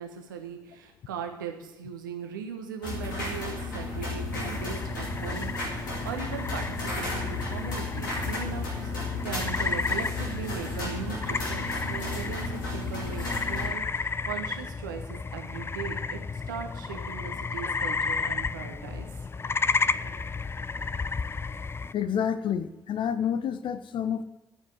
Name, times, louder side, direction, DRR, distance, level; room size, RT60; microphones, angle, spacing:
voice 1, 0.0-8.9 9.2-16.2 16.5-19.1 19.9-20.2, right 7 dB, 80° right, 4 dB, 1.2 m, -39 dB
sound 1, 2.8-13.7, left 2 dB, 85° left, 2.2 m, -33 dB
sound 2, 4.3-21.9, left 4 dB, 25° left, 0.4 m, -33 dB
voice 2, 21.9-24.2, left 8 dB, 55° left, 13 dB, 0.8 m, -29 dB
13.0 x 5.6 x 9.0 m, 0.93 s
figure-of-eight pair, 45°, 10 cm